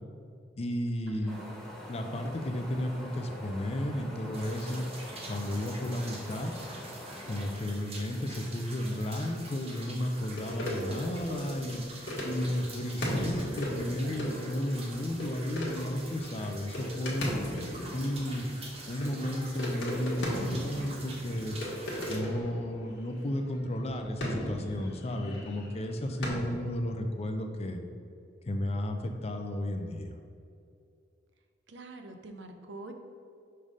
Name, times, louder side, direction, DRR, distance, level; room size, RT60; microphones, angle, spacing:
voice 1, 0.6-1.4 1.9-4.9 5.2-6.5 7.3-11.8 12.2-17.3 17.9-18.5 18.9-21.6 22.1-27.8 28.4-30.2, left 1 dB, 35° left, 5 dB, 0.4 m, -33 dB
voice 2, 1.1-1.5 10.4-11.8 18.0-18.5 31.7-32.9, right 1 dB, 70° right, 6 dB, 0.6 m, -45 dB
Wind, 1.3-7.5, left 1 dB, ahead, 0.8 m, -45 dB
sound 1, 4.3-22.2, right 2 dB, 30° right, 0.8 m, -46 dB
sound 2, 10.4-26.3, equal, 70° left, 1.4 m, -37 dB
5.6 x 3.3 x 5.1 m, 2.4 s
head